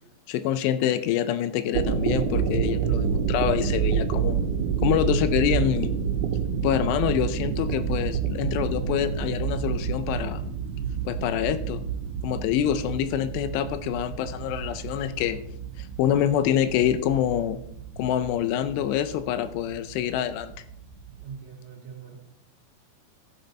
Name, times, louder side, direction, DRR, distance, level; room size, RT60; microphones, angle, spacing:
voice 1, 0.3-4.4 4.8-5.9 6.6-10.5 11.1-11.8 12.2-15.4 15.8-17.6 18.0-20.5, left 10 dB, 85° left, 12 dB, 2.7 m, -26 dB
sound 1, 1.6-21.2, right 7 dB, 75° right, 2.7 m, -29 dB
voice 2, 21.2-22.2, right 6 dB, 55° right, -1 dB, 2.3 m, -42 dB
12.5 x 7.7 x 4.2 m, 0.72 s
omnidirectional pair, 5.0 m